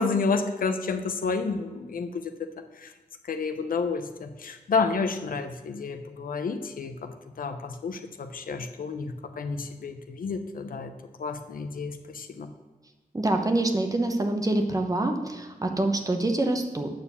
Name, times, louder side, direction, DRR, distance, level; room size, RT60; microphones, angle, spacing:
voice 1, 0.0-2.5 2.7-2.9 3.3-12.5, left 4 dB, 75° left, 8 dB, 0.7 m, -30 dB
voice 2, 13.1-16.9, right 2 dB, 25° right, 5 dB, 0.9 m, -26 dB
9.1 x 4.3 x 7.0 m, 1.2 s
wide cardioid pair, 105°, 15 cm